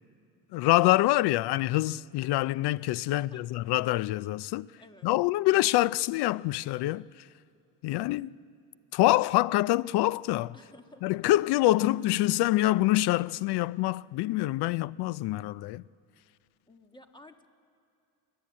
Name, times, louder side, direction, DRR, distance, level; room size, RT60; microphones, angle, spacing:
voice 1, 0.5-4.7 5.0-7.0 7.8-8.4 8.9-10.5 11.0-15.8, left 17 dB, 75° left, 0.5 m, -25 dB
voice 2, 3.1-3.5 4.8-5.1 10.5-11.0 16.7-17.5, left 1 dB, 10° left, 1.4 m, -53 dB
29.5 x 10.5 x 8.6 m
cardioid pair, 95°, 40 cm